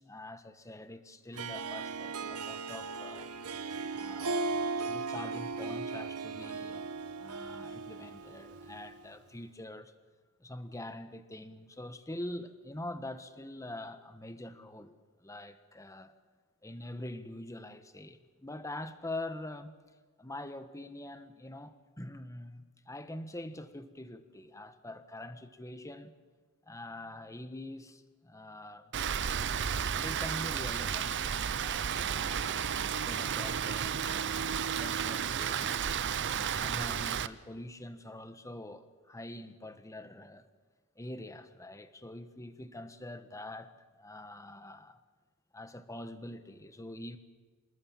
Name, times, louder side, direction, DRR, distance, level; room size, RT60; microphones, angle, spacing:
voice 1, 0.0-3.3 3.9-6.9 7.2-9.9 10.4-16.1 16.6-19.7 20.2-26.1 26.7-28.9 29.9-34.0 34.5-40.5 41.0-43.7 44.0-45.0 45.5-47.2, left 1 dB, 15° left, 1.3 m, -44 dB
Harp, 1.3-9.1, right 4 dB, 90° right, 1.1 m, -37 dB
Rain, 28.9-37.3, right 8 dB, 55° right, 0.7 m, -32 dB
27.0 x 19.5 x 7.4 m
head